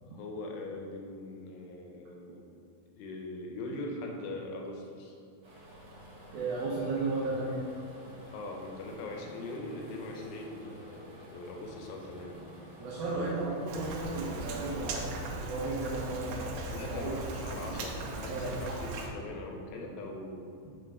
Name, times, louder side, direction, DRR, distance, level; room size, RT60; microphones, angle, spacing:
voice 1, 0.0-2.4 3.0-5.1 6.7-6.9 8.2-12.4 16.7-20.4, left 2 dB, 75° left, 1 dB, 2.5 m, -41 dB
sound 1, 5.4-15.3, equal, 50° right, 1.7 m, -51 dB
voice 2, 6.3-7.6 12.8-17.1 18.3-18.5, right 3 dB, 70° right, -6 dB, 2.5 m, -34 dB
Rain, 13.7-19.1, right 2 dB, 90° right, 2.7 m, -38 dB
7.7 x 3.7 x 4.7 m, 2.5 s
omnidirectional pair, 4.7 m